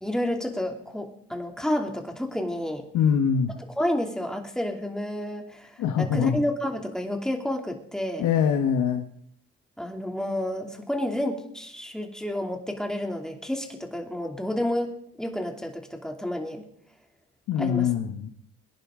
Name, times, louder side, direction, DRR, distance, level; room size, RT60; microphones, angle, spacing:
voice 1, 0.0-2.9 3.6-8.3 9.8-14.9 15.2-16.6 17.6-17.9, left 1 dB, ahead, 2 dB, 2.8 m, -30 dB
voice 2, 2.9-3.5 5.8-6.4 8.2-9.0 17.5-18.3, left 7 dB, 80° left, 4 dB, 1.4 m, -23 dB
24.0 x 10.5 x 3.8 m, 0.68 s
cardioid pair, 90°, 30 cm